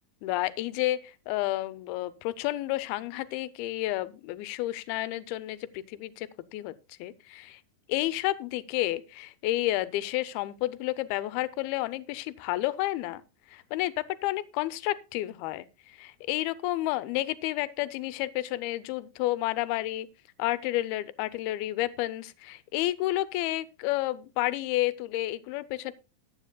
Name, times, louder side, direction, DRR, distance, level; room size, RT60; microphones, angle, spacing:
voice 1, 0.2-6.7 7.0-7.6 7.9-13.2 13.5-20.1 20.4-25.9, left 16 dB, 85° left, 2.5 m, -31 dB
14.5 x 9.7 x 2.2 m
omnidirectional pair, 4.3 m